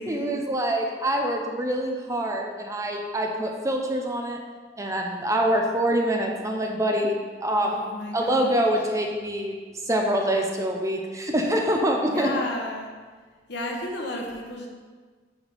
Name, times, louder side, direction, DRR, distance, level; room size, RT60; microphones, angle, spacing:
voice 1, 0.1-4.4 4.8-7.8 8.1-9.5 9.8-12.3, right 1 dB, 15° right, 2 dB, 0.6 m, -25 dB
voice 2, 7.5-8.7 12.0-12.9 13.5-14.7, left 1 dB, 65° left, 0 dB, 1.2 m, -33 dB
7.2 x 5.7 x 3.5 m, 1.5 s
head